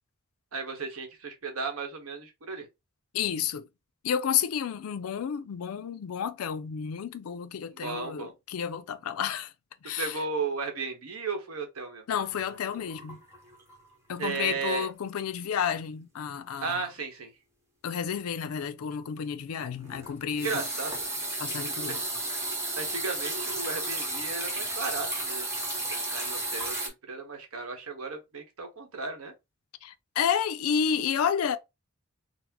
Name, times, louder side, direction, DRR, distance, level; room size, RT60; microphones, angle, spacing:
voice 1, 0.5-2.7 7.7-8.3 10.0-12.0 14.2-14.9 16.6-17.3 20.4-20.9 21.9-22.0 22.8-25.5 25.9-29.3, right 4 dB, 75° right, 1.0 m, -35 dB
voice 2, 3.1-3.7 4.0-9.5 9.8-10.2 12.1-13.2 14.1-16.8 17.8-20.6 21.4-22.0 29.8-31.6, left 8 dB, 80° left, 0.4 m, -31 dB
sound 1, 12.3-13.9 14.2-14.5 14.9-15.0 19.6-26.9, right 2 dB, 15° right, 0.9 m, -33 dB
3.9 x 2.0 x 2.8 m
head